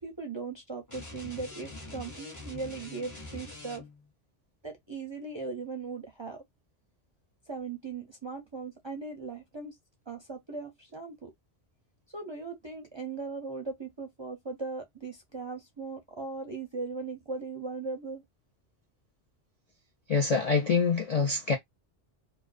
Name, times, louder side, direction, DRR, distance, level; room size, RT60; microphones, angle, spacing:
voice 1, 0.0-3.9 4.6-6.4 7.5-9.8 10.1-11.3 12.1-18.2, right 4 dB, 35° right, 0.4 m, -38 dB
sound 1, 0.9-4.1, left 2 dB, 20° left, 0.7 m, -44 dB
voice 2, 20.1-21.6, left 5 dB, 55° left, 0.4 m, -25 dB
2.4 x 2.2 x 2.4 m
omnidirectional pair, 1.2 m